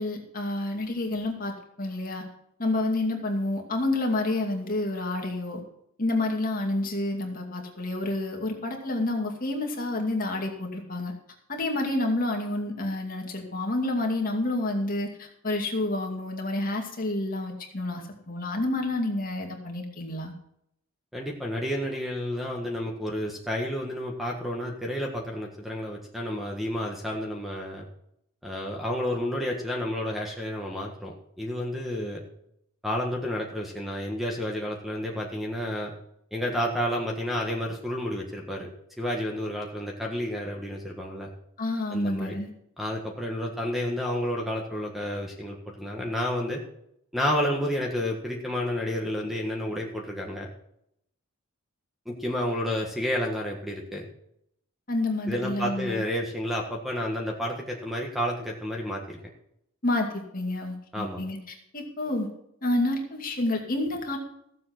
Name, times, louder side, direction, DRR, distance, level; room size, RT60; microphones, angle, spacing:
voice 1, 0.0-2.3 2.6-5.6 6.0-11.1 11.5-20.3 41.6-42.5 54.9-56.0 59.8-62.3 62.6-64.2, left 2 dB, 40° left, 2 dB, 2.4 m, -29 dB
voice 2, 21.1-27.8 28.4-32.2 32.8-35.9 36.3-38.7 39.0-41.3 41.9-42.4 42.8-46.6 47.1-50.5 52.0-54.1 55.3-59.2 60.9-61.2, left 1 dB, ahead, 0 dB, 1.5 m, -30 dB
15.0 x 7.6 x 6.0 m, 0.75 s
head